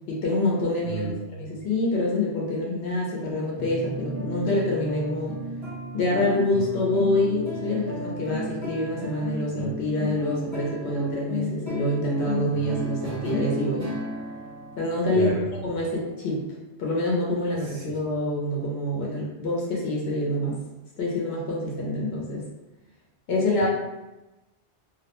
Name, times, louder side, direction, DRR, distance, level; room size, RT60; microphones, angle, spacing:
voice 1, 0.0-1.1 1.4-5.3 5.9-13.9 14.8-15.3 15.6-16.4 16.8-20.6 21.0-22.4 23.3-23.7, left 1 dB, 65° left, -3 dB, 0.8 m, -26 dB
voice 2, 0.8-1.2 15.1-15.5 17.6-17.9 23.6-23.7, right 4 dB, 65° right, -2 dB, 0.7 m, -32 dB
sound 1, 3.6-16.3, left 1 dB, 30° right, 0.6 m, -34 dB
2.3 x 2.1 x 2.8 m, 1.0 s
omnidirectional pair, 1.2 m